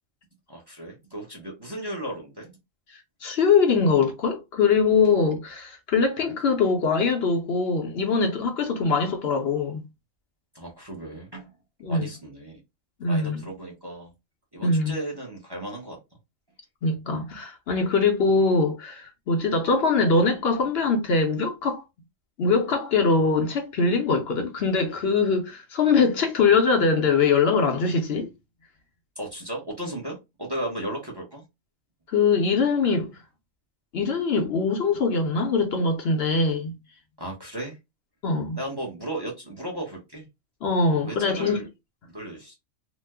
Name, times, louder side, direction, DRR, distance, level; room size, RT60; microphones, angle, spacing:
voice 1, 0.5-2.5 10.5-11.5 11.9-12.6 13.1-14.1 14.5-16.0 29.2-31.4 37.2-37.8 38.5-40.2 41.0-41.7 42.1-42.6, right 1 dB, 25° right, 0.8 m, -35 dB
voice 2, 2.9-9.8 11.8-12.1 13.0-13.4 14.6-14.9 16.8-21.8 22.4-28.3 32.1-33.2 33.9-36.7 38.2-38.6 40.6-41.6, left 4 dB, 60° left, 0.8 m, -22 dB
2.9 x 2.0 x 3.4 m
omnidirectional pair, 1.3 m